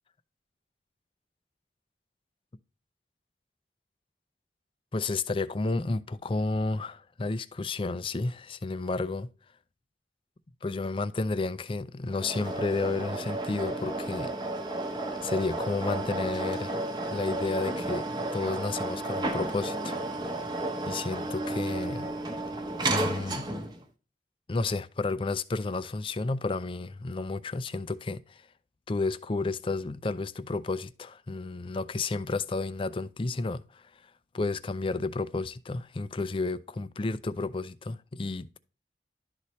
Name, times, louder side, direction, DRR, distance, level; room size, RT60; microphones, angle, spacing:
voice 1, 4.9-9.3 10.6-14.3 15.2-16.9 17.1-18.1 18.3-20.0 20.9-22.1 22.8-23.5 24.5-28.4 28.9-33.8 34.3-38.6, left 3 dB, 30° left, 0.4 m, -31 dB
sound 1, 12.1-23.8, right 2 dB, 25° right, 0.9 m, -32 dB
11.5 x 4.1 x 3.1 m
head